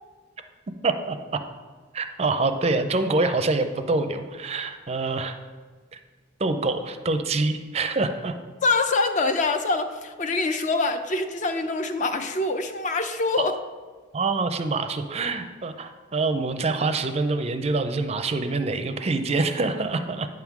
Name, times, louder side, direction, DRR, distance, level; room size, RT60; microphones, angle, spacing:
voice 1, 0.8-1.4 1.9-5.4 5.9-6.0 6.4-8.3 13.4-13.5 14.1-20.3, right 3 dB, 35° right, 8 dB, 0.4 m, -25 dB
voice 2, 8.6-13.6, left 3 dB, 40° left, 8 dB, 0.5 m, -25 dB
9.3 x 3.6 x 5.9 m, 1.4 s
head